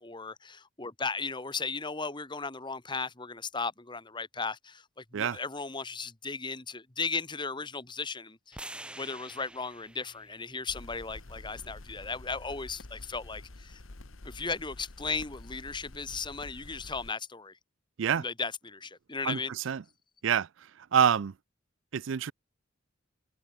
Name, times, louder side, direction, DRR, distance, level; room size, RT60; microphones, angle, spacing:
voice 1, 0.0-4.8 5.1-8.6 9.0-13.8 14.3-17.5 18.2-19.5, left 4 dB, 25° left, 1.9 m, -36 dB
sound 1, 8.5-12.7, right 1 dB, 5° right, 5.9 m, -49 dB
sound 2, 10.7-17.1, left 2 dB, 75° left, 1.4 m, -48 dB
voice 2, 19.2-19.8 20.2-20.5 20.9-21.3 21.9-22.3, right 8 dB, 65° right, 0.4 m, -26 dB
head